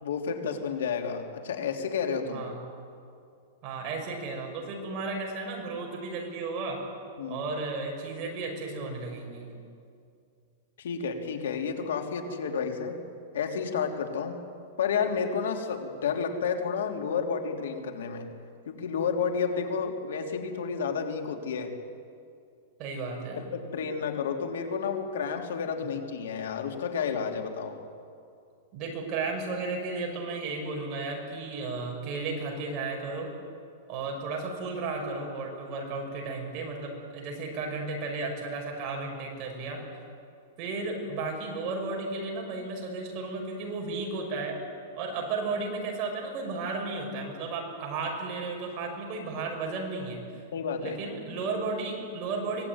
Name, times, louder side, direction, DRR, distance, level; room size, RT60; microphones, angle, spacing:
voice 1, 0.0-2.4 7.2-7.4 10.8-13.0 13.3-14.4 14.8-18.3 18.7-21.8 23.4-27.8 50.5-51.0, left 6 dB, 85° left, 3 dB, 3.3 m, -31 dB
voice 2, 3.6-6.8 7.3-9.5 22.8-23.4 28.7-33.3 33.9-39.8 40.6-44.6 44.9-50.4 50.8-52.7, right 3 dB, 30° right, 0 dB, 5.9 m, -34 dB
24.5 x 19.0 x 9.8 m, 2.4 s
supercardioid pair, 170°, 0 cm